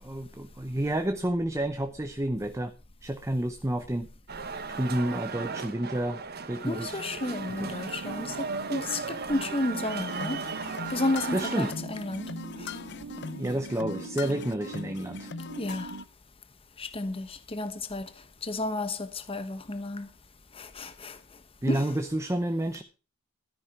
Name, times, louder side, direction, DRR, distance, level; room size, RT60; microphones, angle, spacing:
voice 1, 0.0-2.7 3.0-4.1 4.7-7.0 7.6-7.7 11.3-11.7 13.2-15.3 21.6-22.8, right 1 dB, 15° right, 0.7 m, -30 dB
sound 1, 4.3-11.7, right 5 dB, 50° right, 1.1 m, -36 dB
voice 2, 6.6-10.4 10.9-12.3 12.6-12.7 15.6-15.9 16.8-18.1 18.4-20.1 20.5-21.2 21.7-22.0, left 2 dB, 25° left, 1.0 m, -32 dB
sound 2, 7.1-16.1, right 4 dB, 85° right, 0.7 m, -43 dB
sound 3, 10.1-16.0, left 4 dB, 55° left, 0.7 m, -40 dB
13.0 x 10.0 x 4.8 m
head